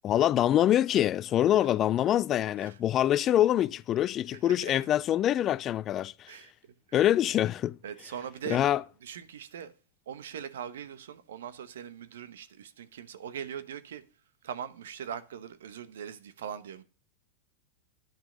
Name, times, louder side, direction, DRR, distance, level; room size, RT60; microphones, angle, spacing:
voice 1, 0.0-6.3 6.9-7.8 8.5-8.8, left 12 dB, 35° left, 0.4 m, -25 dB
voice 2, 4.3-4.7 6.3-6.5 6.9-7.1 7.8-8.6 9.0-9.7 10.1-14.0 14.4-16.8, right 8 dB, 70° right, 1.1 m, -41 dB
10.5 x 6.0 x 5.1 m
hypercardioid pair, 95°, 0 cm